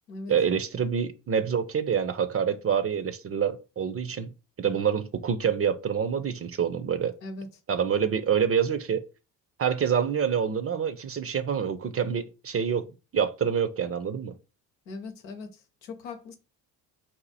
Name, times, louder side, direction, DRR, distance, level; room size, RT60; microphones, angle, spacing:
voice 1, 0.3-4.3 4.6-7.1 7.7-9.0 9.6-12.8 13.1-14.3, right 7 dB, 30° right, 0.5 m, -26 dB
voice 2, 14.9-16.4, left 3 dB, 90° left, 0.9 m, -39 dB
4.3 x 2.6 x 4.1 m
hypercardioid pair, 55°, 50 cm